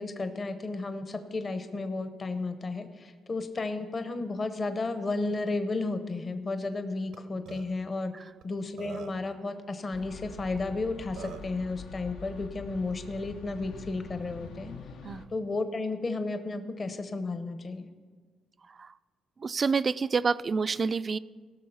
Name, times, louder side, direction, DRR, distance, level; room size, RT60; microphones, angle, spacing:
voice 1, 0.0-8.1 8.4-14.7 15.3-17.9, left 3 dB, 35° left, 9 dB, 0.8 m, -33 dB
Burping eructation, 7.1-7.2 7.5-7.7 8.4-8.5 8.8-9.3 10.7-10.8 11.2-11.5, right 7 dB, 90° right, 0.8 m, -42 dB
sound 1, 9.9-15.3, left 3 dB, 85° left, 0.9 m, -45 dB
voice 2, 19.4-21.2, right 5 dB, 40° right, 16 dB, 0.3 m, -28 dB
17.5 x 6.3 x 5.6 m, 1.5 s
cardioid pair, 90°, 0 cm